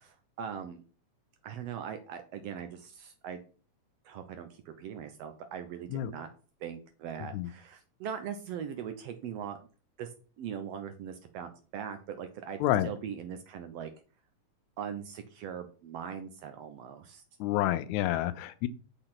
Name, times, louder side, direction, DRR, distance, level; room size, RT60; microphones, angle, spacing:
voice 1, 0.4-0.8 1.4-3.4 4.0-6.3 6.6-9.6 10.0-10.1 10.4-13.9 14.8-17.2, right 8 dB, 75° right, 8 dB, 1.5 m, -40 dB
voice 2, 12.6-12.9 17.4-18.7, left 14 dB, 85° left, 13 dB, 2.0 m, -28 dB
6.4 x 4.0 x 5.8 m, 0.39 s
omnidirectional pair, 3.4 m